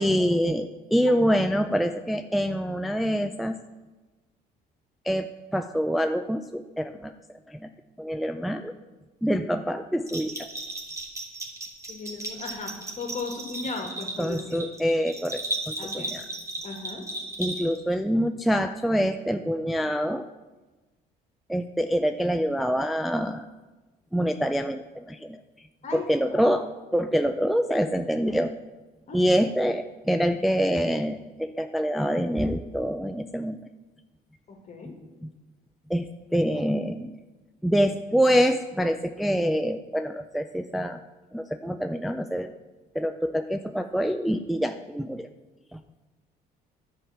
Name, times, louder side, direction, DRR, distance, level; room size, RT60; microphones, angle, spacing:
voice 1, 0.0-3.5 5.0-7.1 7.5-7.7 8.0-8.7 9.2-10.5 14.2-16.2 17.4-20.2 21.5-23.5 24.1-25.4 25.9-28.5 29.1-33.6 35.2-35.3 35.9-36.1 36.3-37.2 37.6-41.0 41.3-42.5 42.9-45.3 45.7-45.8, equal, ahead, 7 dB, 0.3 m, -26 dB
Bell, 10.1-17.9, right 2 dB, 20° right, 1.9 m, -35 dB
voice 2, 11.9-14.4 15.8-16.2 16.6-17.0 25.8-26.6 29.1-29.2 34.5-34.9, left 3 dB, 45° left, 2 dB, 2.1 m, -36 dB
9.9 x 4.8 x 7.2 m, 1.2 s
cardioid pair, 110°, 17 cm